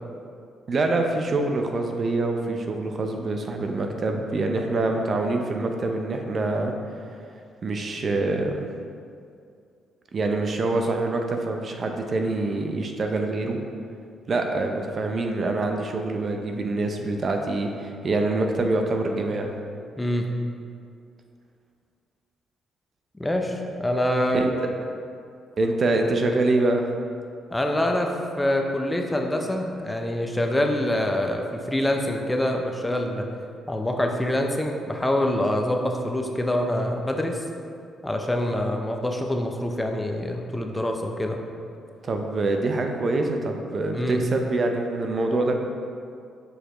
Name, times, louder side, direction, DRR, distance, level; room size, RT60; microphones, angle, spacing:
voice 1, 0.7-6.7 7.6-8.7 10.1-13.6 14.3-19.5 24.3-24.7 25.6-26.8 42.0-45.5, right 2 dB, 45° right, 3 dB, 0.6 m, -25 dB
voice 2, 20.0-20.3 23.2-24.5 27.5-28.1 28.4-33.3 33.7-37.4 38.0-41.4 43.9-44.2, left 1 dB, 10° left, 3 dB, 0.6 m, -25 dB
6.6 x 4.7 x 3.0 m, 2.4 s
cardioid pair, 90°, 0 cm